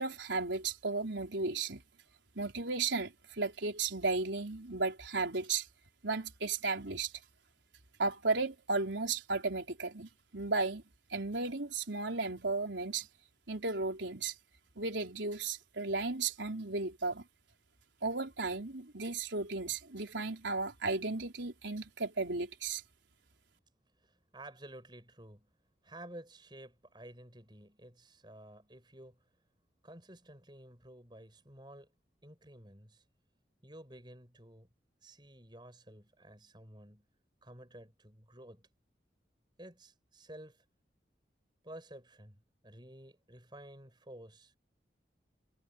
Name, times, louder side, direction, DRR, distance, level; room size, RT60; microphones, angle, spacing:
voice 1, 0.0-1.8 2.4-5.7 6.0-7.1 8.0-10.8 11.1-13.1 13.5-14.3 14.8-17.2 18.0-22.8, right 3 dB, 90° right, 4.2 m, -34 dB
voice 2, 24.0-25.5 25.8-29.2 29.8-31.9 32.2-33.0 33.6-34.7 35.0-37.0 37.4-38.7 39.6-40.6 41.6-42.4 42.6-44.6, right 1 dB, 25° right, 7.5 m, -52 dB
head